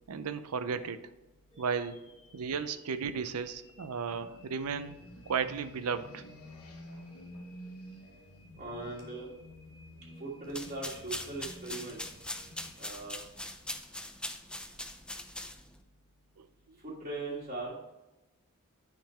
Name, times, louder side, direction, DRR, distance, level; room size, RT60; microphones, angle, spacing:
voice 1, 0.1-1.0 1.6-2.0 2.3-5.0 5.3-6.2 16.4-16.8, right 6 dB, 85° right, 10 dB, 0.6 m, -34 dB
sound 1, 1.5-13.6, equal, 30° left, 2.1 m, -61 dB
sound 2, 4.1-14.8, equal, 80° left, 1.3 m, -51 dB
voice 2, 8.6-9.3 10.2-12.0 12.8-13.2 16.8-17.7, right 2 dB, 35° right, -8 dB, 1.7 m, -39 dB
sound 3, 10.4-15.8, left 1 dB, 5° left, 0.5 m, -41 dB
10.0 x 3.8 x 4.3 m, 1.0 s
head